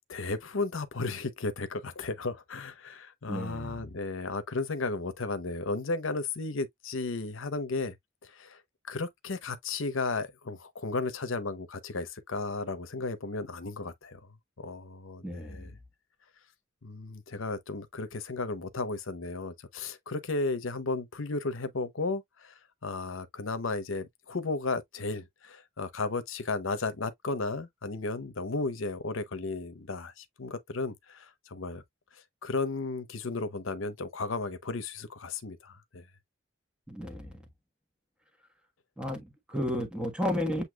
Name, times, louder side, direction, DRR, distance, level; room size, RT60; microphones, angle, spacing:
voice 1, 0.1-8.0 8.2-14.2 14.6-15.8 16.8-31.8 32.1-36.1, left 3 dB, 70° left, 0.8 m, -34 dB
voice 2, 3.3-3.9 15.2-15.7 36.9-37.4 39.0-40.6, equal, 5° right, 1.3 m, -33 dB
7.9 x 2.8 x 2.3 m
head